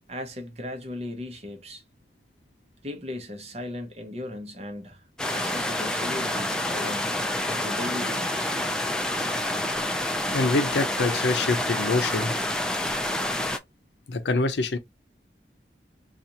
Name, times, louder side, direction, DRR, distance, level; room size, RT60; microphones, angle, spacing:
voice 1, 0.1-1.8 2.8-5.0 5.3-7.1 7.5-8.5, left 1 dB, 35° right, 0.8 m, -37 dB
sound 1, 5.2-13.6, left 1 dB, 5° left, 0.3 m, -28 dB
voice 2, 10.3-12.4 14.1-14.8, left 3 dB, 80° left, 0.6 m, -25 dB
2.8 x 2.4 x 3.9 m
head